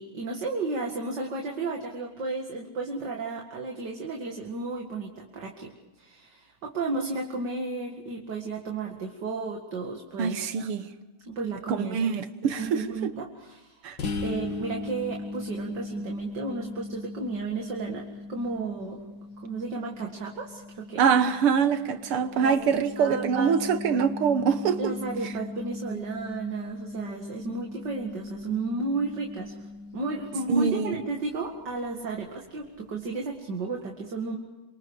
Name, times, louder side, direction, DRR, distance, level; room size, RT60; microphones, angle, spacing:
voice 1, 0.0-5.7 6.0-10.7 11.2-12.1 12.4-13.9 14.2-19.0 19.4-21.1 22.4-22.6 23.0-23.6 24.8-29.6 29.9-34.4, right 3 dB, 55° right, 2.7 m, -33 dB
voice 2, 10.2-10.9 11.7-13.1 13.8-14.0 21.0-24.9 25.2-25.3 30.5-31.0, right 6 dB, 85° right, 2.2 m, -24 dB
sound 1, 14.0-31.5, left 3 dB, 55° left, 2.9 m, -39 dB
28.0 x 25.0 x 5.0 m
omnidirectional pair, 2.4 m